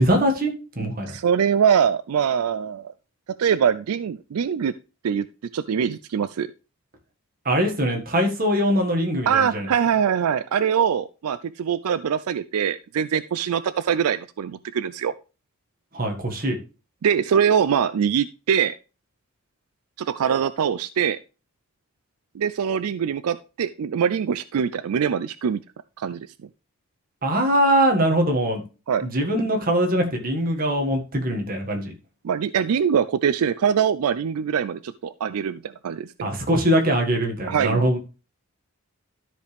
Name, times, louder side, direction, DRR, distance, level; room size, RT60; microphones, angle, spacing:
voice 1, 0.0-1.1 7.4-9.7 15.9-16.6 27.2-28.6 29.0-31.9 36.2-38.0, equal, 40° right, 3 dB, 1.7 m, -22 dB
voice 2, 1.0-2.9 3.4-4.7 5.0-5.3 5.5-6.5 9.3-15.1 17.0-18.7 20.0-21.2 22.3-25.6 26.0-26.3 28.9-29.0 32.2-36.3 37.5-38.0, right 7 dB, 80° right, 15 dB, 0.4 m, -23 dB
13.0 x 5.0 x 3.3 m, 0.32 s
head